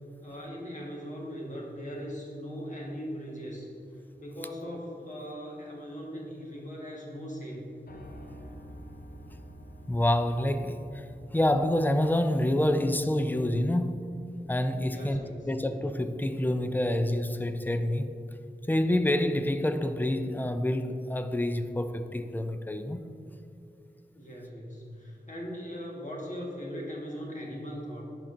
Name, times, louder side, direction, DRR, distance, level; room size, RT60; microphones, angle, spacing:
voice 1, 0.2-3.7 4.2-7.6 14.9-15.5 24.1-28.0, equal, 45° left, 1.4 m, -39 dB
Piano, 7.9-15.9, equal, 60° left, 0.6 m, -50 dB
voice 2, 9.9-11.1 11.3-14.0 14.5-18.1 18.7-23.0, left 1 dB, 10° left, 0.4 m, -27 dB
11.0 x 4.5 x 2.6 m
wide cardioid pair, 65°, 17 cm